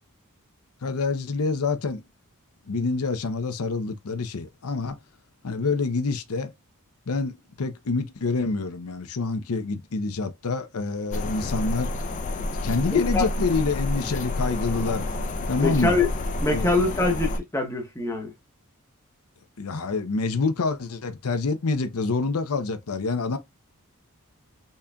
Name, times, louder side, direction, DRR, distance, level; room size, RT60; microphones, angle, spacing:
voice 1, 0.8-2.0 2.7-5.0 5.4-6.5 7.1-11.9 12.6-15.1 15.5-16.0 16.5-16.7 19.6-23.4, left 4 dB, 80° left, 0.7 m, -27 dB
sound 1, 11.1-17.4, left 2 dB, 35° left, 0.4 m, -29 dB
voice 2, 12.9-13.3 15.6-16.1 16.4-18.3, left 3 dB, 15° left, 0.8 m, -24 dB
4.2 x 3.7 x 2.2 m
head